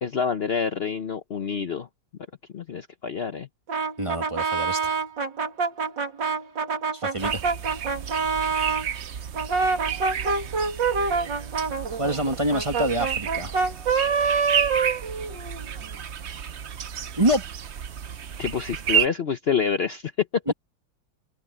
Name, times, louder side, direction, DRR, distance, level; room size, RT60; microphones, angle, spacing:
voice 1, 0.0-1.9 2.5-3.5 18.4-20.5, left 6 dB, 70° left, 0.5 m, -27 dB
Brass instrument, 3.7-8.9 9.3-15.7, right 5 dB, 60° right, 3.3 m, -26 dB
voice 2, 4.0-5.0 6.9-7.4 12.0-13.5 17.2-17.4 20.5-20.6, right 1 dB, 15° right, 2.0 m, -26 dB
sound 1, 7.2-19.1, right 8 dB, 80° right, 0.6 m, -31 dB
omnidirectional pair, 2.3 m